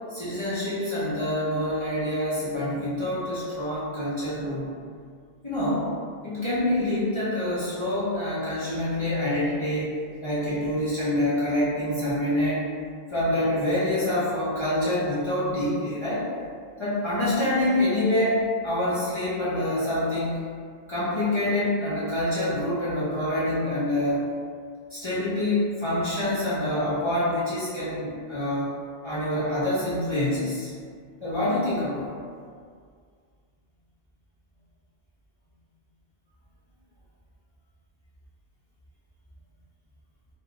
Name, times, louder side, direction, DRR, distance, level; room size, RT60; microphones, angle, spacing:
voice 1, 0.1-4.7 5.4-5.9 6.2-9.9 10.2-12.6 13.1-16.3 16.8-20.5 20.9-24.3 24.9-28.7 29.0-30.7 31.2-32.1, left 1 dB, 30° left, -12 dB, 0.6 m, -26 dB
2.3 x 2.1 x 3.0 m, 2.1 s
omnidirectional pair, 1.1 m